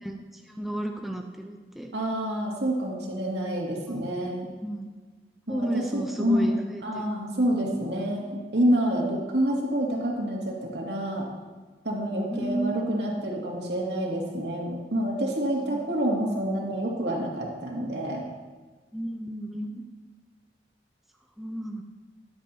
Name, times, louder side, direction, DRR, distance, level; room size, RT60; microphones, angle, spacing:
voice 1, 0.0-1.9 4.6-4.9 5.5-7.1 12.3-13.1 15.7-15.8 18.9-19.8 21.4-21.8, right 1 dB, ahead, 2 dB, 0.7 m, -33 dB
voice 2, 1.9-4.5 5.5-11.3 11.8-18.2, right 1 dB, 80° right, -2 dB, 2.5 m, -28 dB
13.0 x 11.0 x 2.9 m, 1.3 s
head